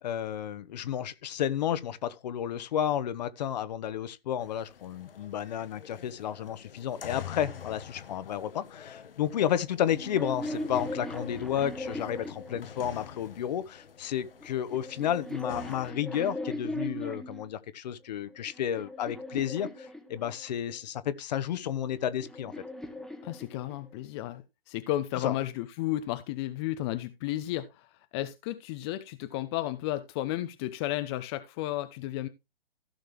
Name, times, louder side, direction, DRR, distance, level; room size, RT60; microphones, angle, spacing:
voice 1, 0.0-22.5 25.2-25.3, left 10 dB, 45° left, 1.2 m, -32 dB
sound 1, 4.4-15.9, left 7 dB, 70° left, 1.4 m, -46 dB
sound 2, 9.8-13.2 14.1-17.5 18.2-20.6 21.6-24.0, left 1 dB, ahead, 1.2 m, -39 dB
voice 2, 23.2-27.9 28.1-32.3, left 14 dB, 25° left, 0.8 m, -33 dB
15.5 x 6.5 x 3.2 m
figure-of-eight pair, 130°, 29 cm